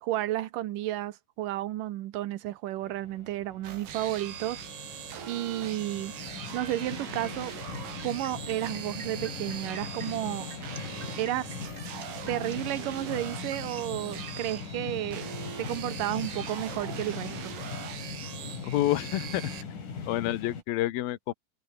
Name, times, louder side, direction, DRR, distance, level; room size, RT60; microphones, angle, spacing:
voice 1, 0.0-4.6 5.3-6.1 6.5-7.5 8.0-10.5 11.2-11.5 12.3-15.2 15.6-17.5, right 14 dB, 70° right, 2.3 m, -32 dB
sound 1, 2.8-20.6, left 5 dB, 55° left, 5.6 m, -40 dB
sound 2, 3.6-19.6, right 9 dB, 85° right, 4.9 m, -41 dB
sound 3, 7.2-14.4, right 3 dB, 20° right, 1.5 m, -49 dB
voice 2, 18.6-19.5 20.1-21.3, left 15 dB, 75° left, 2.9 m, -28 dB
omnidirectional pair, 4.5 m